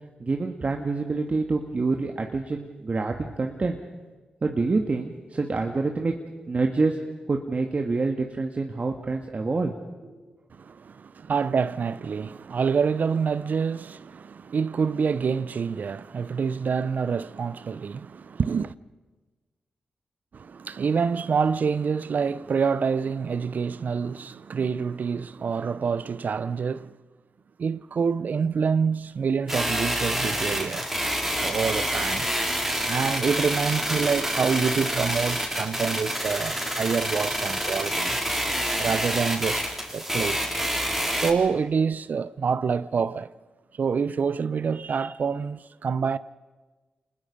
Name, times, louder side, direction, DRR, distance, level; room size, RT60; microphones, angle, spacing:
voice 1, 0.2-3.8 4.4-6.1 6.5-7.0 7.3-9.7 10.0-10.2, right 3 dB, 45° right, 1.7 m, -26 dB
voice 2, 10.5-18.7 20.3-26.9 27.6-30.9 31.3-32.3 32.8-38.2 38.8-39.7 39.9-40.5 41.2-43.3 43.8-46.2, right 6 dB, 65° right, 0.6 m, -27 dB
sound 1, 29.5-41.3, equal, 10° right, 4.4 m, -27 dB
26.0 x 20.5 x 5.3 m
supercardioid pair, 45°, 3 cm